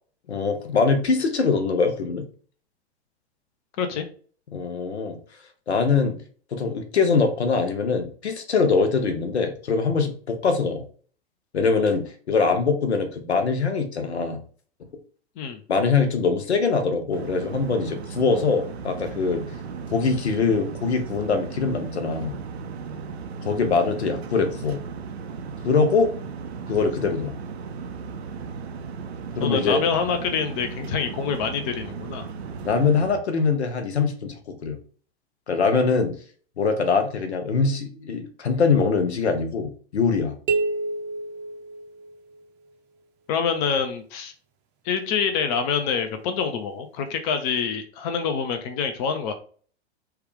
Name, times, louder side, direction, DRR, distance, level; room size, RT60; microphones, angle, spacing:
voice 1, 0.3-2.2 4.5-5.2 5.7-6.2 6.5-10.8 11.5-14.4 15.7-19.4 19.9-22.3 23.4-24.8 25.6-26.1 26.7-27.4 29.4-29.8 32.6-34.8 35.5-36.2 36.6-40.3, left 4 dB, 75° left, 6 dB, 0.8 m, -23 dB
sound 1, 17.1-33.2, right 5 dB, 70° right, 0.5 m, -36 dB
voice 2, 29.4-32.3 43.3-44.3 44.8-49.3, left 6 dB, 35° left, 7 dB, 0.6 m, -26 dB
sound 2, 40.5-42.4, right 3 dB, 30° right, 0.6 m, -28 dB
3.3 x 2.3 x 3.4 m, 0.44 s
figure-of-eight pair, 95°, 33 cm